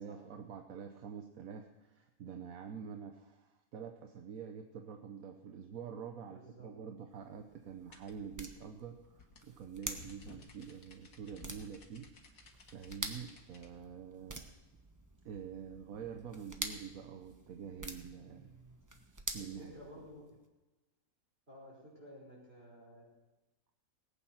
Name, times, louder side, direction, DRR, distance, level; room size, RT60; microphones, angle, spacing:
voice 1, 0.0-14.4 15.2-18.6 19.3-19.7, right 7 dB, 75° right, 5 dB, 1.3 m, -47 dB
voice 2, 6.3-6.7 19.4-20.3 21.5-23.1, equal, 45° right, -4 dB, 5.8 m, -53 dB
sound 1, 7.1-20.3, right 1 dB, 15° right, 1.1 m, -48 dB
sound 2, 7.9-13.7, left 3 dB, 70° left, 1.9 m, -57 dB
18.5 x 8.9 x 5.9 m, 1.1 s
omnidirectional pair, 1.5 m